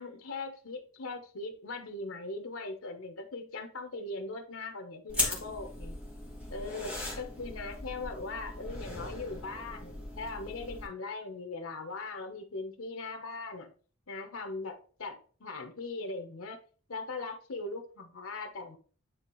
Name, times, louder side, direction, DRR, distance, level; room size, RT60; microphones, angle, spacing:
voice 1, 0.0-6.0 6.5-13.7 14.1-16.6 16.9-18.8, left 3 dB, 80° left, 1.0 m, -40 dB
sound 1, 5.1-10.9, left 2 dB, 5° right, 1.9 m, -38 dB
9.4 x 3.4 x 3.1 m
head